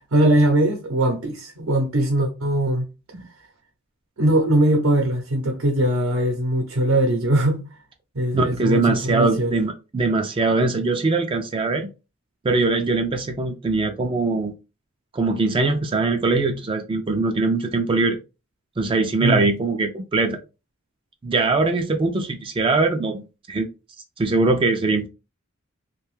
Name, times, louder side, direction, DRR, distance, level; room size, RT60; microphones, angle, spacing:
voice 1, 0.1-2.8 4.2-7.6 8.1-9.6 19.2-19.4, right 1 dB, 80° right, 0.7 m, -20 dB
voice 2, 8.3-11.9 12.4-14.5 15.1-18.2 18.8-20.4 21.2-23.7 24.2-25.1, right 3 dB, 25° right, 0.3 m, -22 dB
2.7 x 2.2 x 3.1 m
head